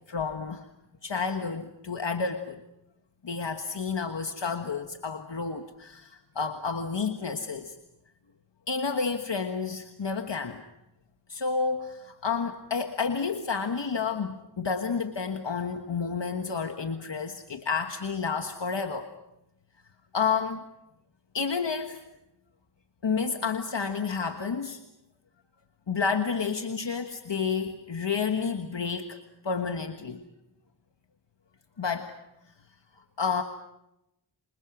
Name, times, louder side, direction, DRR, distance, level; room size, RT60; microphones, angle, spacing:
voice 1, 0.1-0.7 1.0-2.6 3.2-7.8 8.7-10.7 11.3-19.1 20.1-20.6 21.3-22.0 23.0-24.8 25.9-29.2 29.4-30.2 31.8-32.1 33.2-33.4, left 5 dB, 70° left, 6 dB, 1.5 m, -30 dB
27.0 x 25.5 x 6.2 m, 0.86 s
wide cardioid pair, 50°, 45 cm